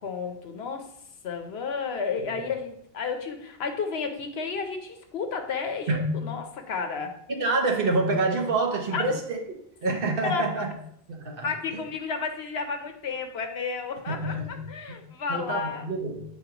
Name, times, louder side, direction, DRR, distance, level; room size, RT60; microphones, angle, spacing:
voice 1, 0.0-0.9 1.2-7.1 8.9-9.1 10.2-10.7 11.4-15.8, left 5 dB, 85° left, 5 dB, 1.1 m, -32 dB
voice 2, 5.9-6.2 7.3-10.7 11.1-11.8 14.1-14.6 15.3-16.2, right 2 dB, 65° right, 2 dB, 1.2 m, -27 dB
8.3 x 4.5 x 2.9 m, 0.71 s
omnidirectional pair, 1.0 m